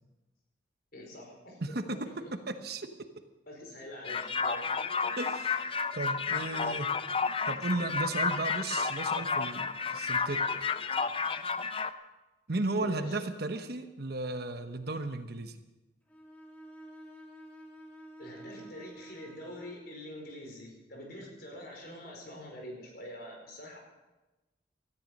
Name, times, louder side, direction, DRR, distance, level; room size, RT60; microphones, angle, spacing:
voice 1, 0.9-2.3 3.5-4.6 12.7-13.2 18.2-23.8, left 1 dB, 55° left, 0 dB, 4.8 m, -45 dB
voice 2, 1.6-2.0 2.5-2.9 5.2-5.6 5.9-6.9 7.5-10.4 12.5-15.6, right 2 dB, 60° right, 8 dB, 1.2 m, -34 dB
sound 1, 4.0-11.9, left 5 dB, 30° left, 0.6 m, -31 dB
Bowed string instrument, 16.1-19.9, right 1 dB, 10° left, 2.9 m, -50 dB
17.5 x 13.5 x 5.4 m, 1.1 s
head